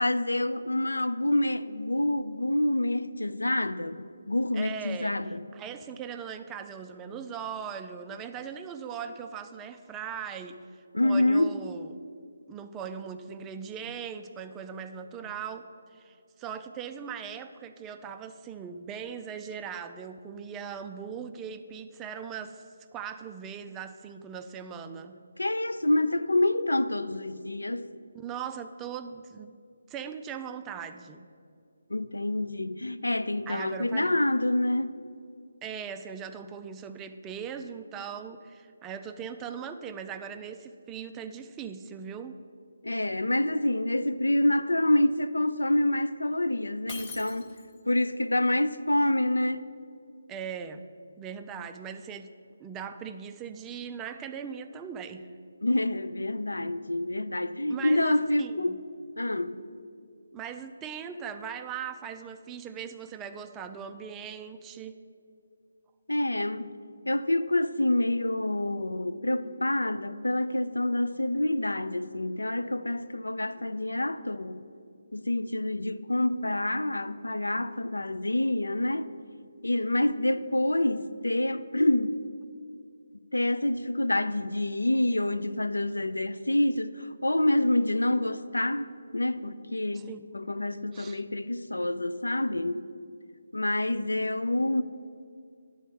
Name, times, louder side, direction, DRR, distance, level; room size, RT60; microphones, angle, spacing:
voice 1, 0.0-5.4 10.9-11.6 25.4-27.9 31.9-34.9 42.8-47.6 47.9-49.7 55.6-58.8 59.2-59.7 66.1-66.8 67.1-74.6 75.1-79.1 79.6-82.2 83.3-88.9 89.1-90.1 90.3-92.9 93.5-94.8, left 1 dB, 75° left, 0.4 m, -27 dB
voice 2, 4.5-5.2 5.5-10.6 11.0-12.0 12.5-22.7 22.9-25.2 28.1-29.5 29.9-31.3 33.5-34.2 35.6-42.4 50.3-50.9 51.2-52.3 52.6-55.3 57.7-58.8 60.3-65.0 89.9-90.3 90.9-91.2, right 7 dB, 15° right, 0.3 m, -39 dB
Shatter, 46.9-47.9, left 5 dB, 25° left, 0.7 m, -43 dB
10.5 x 4.2 x 7.0 m
figure-of-eight pair, 150°, 0 cm